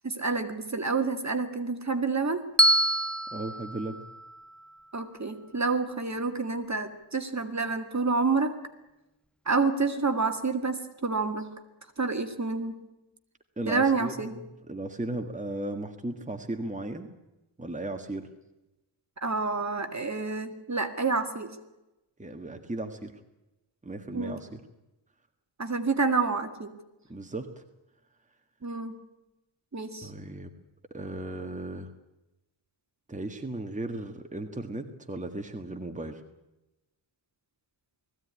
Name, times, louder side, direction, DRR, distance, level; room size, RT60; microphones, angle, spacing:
voice 1, 0.0-2.4 4.9-8.6 9.5-11.5 12.0-12.8 13.7-14.3 19.2-21.5 24.1-24.4 25.6-26.7 28.6-29.0 29.7-30.1, right 4 dB, 35° right, 7 dB, 2.1 m, -28 dB
Bell, 2.6-4.8, right 1 dB, ahead, 0.8 m, -26 dB
voice 2, 3.3-4.0 13.6-17.1 17.6-18.3 22.2-23.2 23.8-24.6 27.1-27.6 30.0-30.5 30.9-31.9 33.1-36.2, right 2 dB, 15° right, 5 dB, 1.7 m, -36 dB
20.0 x 15.5 x 9.7 m, 0.96 s
wide cardioid pair, 100°, 48 cm